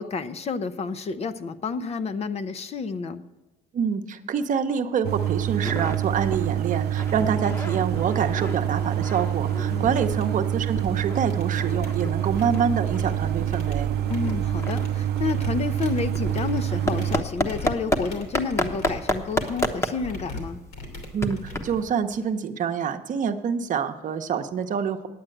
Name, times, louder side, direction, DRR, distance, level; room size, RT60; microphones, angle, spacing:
voice 1, 0.0-3.2 9.7-10.0 14.1-20.6, left 5 dB, 40° left, 12 dB, 0.6 m, -30 dB
voice 2, 3.7-13.9 21.1-25.1, right 7 dB, 50° right, 7 dB, 0.8 m, -26 dB
sound 1, 5.0-17.2, right 11 dB, 75° right, 0.5 m, -26 dB
sound 2, 5.6-6.0 6.3-6.5 6.8-10.4 10.8-18.0 18.3-22.0, left 1 dB, 15° left, 0.9 m, -31 dB
sound 3, 8.3-8.4 8.8-9.0 9.3-9.6 10.0-10.9 11.2-22.4, left 2 dB, 75° left, 2.9 m, -41 dB
9.3 x 8.7 x 7.8 m, 1.1 s
cardioid pair, 110°, 17 cm